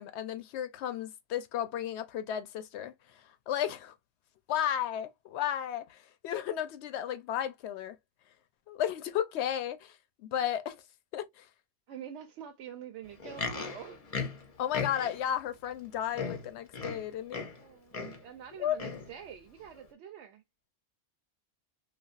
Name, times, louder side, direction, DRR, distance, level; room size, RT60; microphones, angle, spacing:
voice 1, 0.0-3.9 4.5-8.0 8.7-10.8 11.1-11.5 14.6-17.5 18.6-18.8, left 10 dB, 75° left, 0.8 m, -34 dB
voice 2, 11.9-14.4 17.5-20.4, right 9 dB, 80° right, 0.9 m, -47 dB
Livestock farm animals working animals, 13.1-15.3 15.8-15.9 16.1-17.6 17.9-18.3 18.8-19.1 19.8-19.9, left 4 dB, 45° left, 0.5 m, -37 dB
3.2 x 2.4 x 2.3 m
omnidirectional pair, 1.2 m